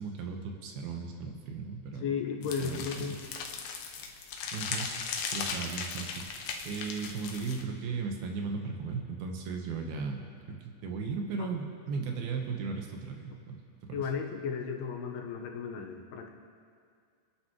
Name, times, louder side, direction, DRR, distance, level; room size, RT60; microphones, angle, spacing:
voice 1, 0.0-2.1 2.6-3.2 4.5-13.6 13.9-14.0, right 4 dB, 75° right, 3 dB, 3.0 m, -36 dB
voice 2, 2.0-3.2 11.4-11.5 13.9-16.3, left 6 dB, 90° left, 2 dB, 3.1 m, -34 dB
sound 1, 2.4-7.6, left 5 dB, 75° left, 2.7 m, -37 dB
30.0 x 10.0 x 3.1 m, 2.2 s
omnidirectional pair, 4.4 m